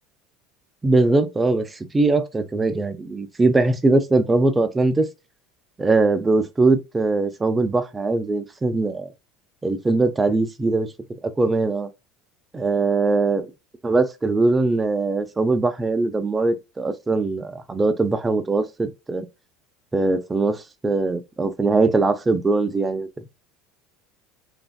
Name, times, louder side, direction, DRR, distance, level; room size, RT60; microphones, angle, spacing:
voice 1, 0.8-5.1 5.8-9.1 9.6-10.9 11.2-11.9 12.5-13.5 13.8-19.3 19.9-23.1, right 3 dB, 15° right, 0.4 m, -21 dB
3.2 x 2.5 x 2.2 m
supercardioid pair, 135°, 0 cm